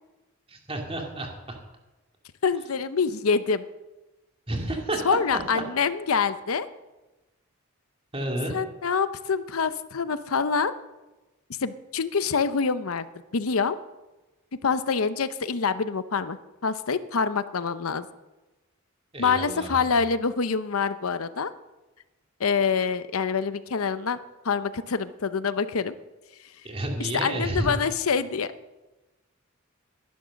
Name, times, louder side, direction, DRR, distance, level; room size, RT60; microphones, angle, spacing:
voice 1, 0.5-1.6 4.5-5.0 8.1-8.5 19.1-20.0 26.6-27.8, right 1 dB, 30° right, 2 dB, 2.6 m, -31 dB
voice 2, 2.4-3.6 5.0-6.7 8.5-10.7 11.6-13.1 13.3-13.8 14.6-16.4 16.6-18.1 19.2-21.5 22.4-24.2 24.4-26.0 27.0-28.5, left 5 dB, 90° left, 13 dB, 0.7 m, -26 dB
12.5 x 11.0 x 6.3 m, 1.1 s
head